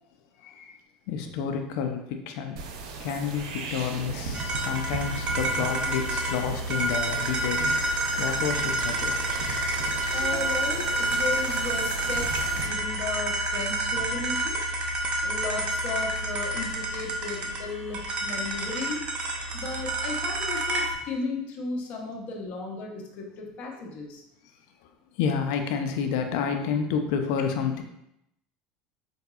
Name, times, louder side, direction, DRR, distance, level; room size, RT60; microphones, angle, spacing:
voice 1, 0.4-0.8 1.1-2.6 3.0-7.8 8.2-9.1 25.2-27.8, left 6 dB, 75° left, 5 dB, 0.4 m, -29 dB
sound 1, 2.6-12.7, right 4 dB, 80° right, 0.5 m, -37 dB
sound 2, 4.3-20.9, right 1 dB, 35° right, 0.7 m, -29 dB
voice 2, 10.1-14.6 15.2-19.0 19.5-24.2, left 3 dB, 55° left, 0 dB, 0.8 m, -35 dB
4.8 x 2.6 x 2.3 m, 0.80 s
supercardioid pair, 110°, 3 cm